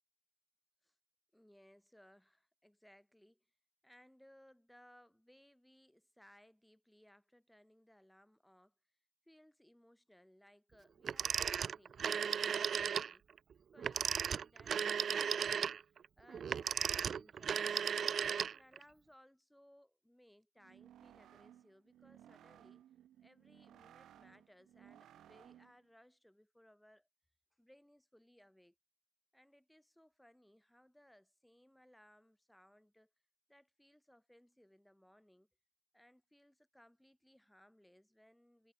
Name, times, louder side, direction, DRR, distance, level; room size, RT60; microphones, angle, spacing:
voice 1, 1.3-3.5 3.8-8.7 9.3-13.3 13.7-17.9 18.5-22.9 23.2-27.1 27.6-28.8 29.3-33.1 33.5-35.5 35.9-38.7, equal, 5° left, 8.0 m, -65 dB
Telephone, 11.0-13.1 13.8-18.8, right 7 dB, 50° right, 0.4 m, -35 dB
sound 1, 20.6-25.9, right 11 dB, 75° right, 3.4 m, -61 dB
cardioid pair, 90°, 0 cm